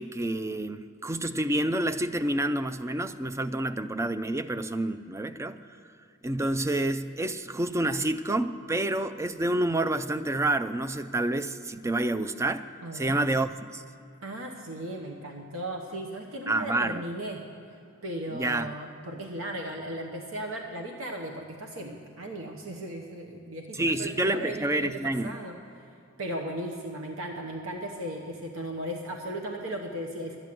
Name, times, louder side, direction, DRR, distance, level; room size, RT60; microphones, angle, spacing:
voice 1, 0.0-5.6 6.2-12.7 12.9-13.8 16.5-17.0 18.3-18.7 23.7-25.3, right 1 dB, 15° right, 11 dB, 0.3 m, -28 dB
voice 2, 12.8-13.3 14.2-17.4 18.0-25.6 26.2-30.4, right 1 dB, 70° right, 1 dB, 1.1 m, -36 dB
12.5 x 9.1 x 7.6 m, 2.7 s
head